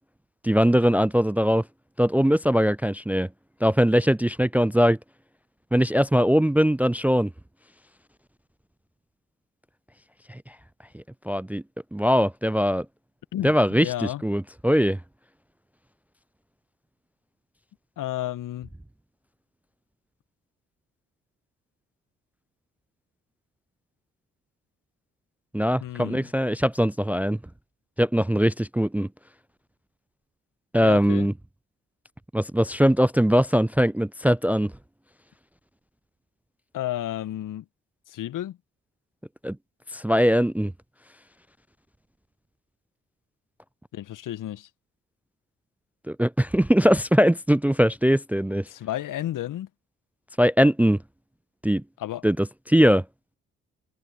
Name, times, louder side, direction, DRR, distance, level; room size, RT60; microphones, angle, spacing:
voice 1, 0.4-1.6 2.0-3.3 3.6-5.0 5.7-7.3 10.3-10.4 10.9-11.6 11.9-12.9 13.4-15.0 25.5-27.4 28.0-29.1 30.7-31.3 32.3-34.7 39.4-39.6 39.9-40.7 46.1-48.7 50.4-51.0 51.6-51.8 52.2-53.0, equal, 5° right, 0.5 m, -21 dB
voice 2, 13.3-14.2 18.0-18.7 25.8-26.3 30.8-31.3 36.7-37.6 38.1-38.6 43.9-44.7 48.7-49.7 52.0-52.2, left 13 dB, 55° left, 2.0 m, -32 dB
figure-of-eight pair, 40°, 37 cm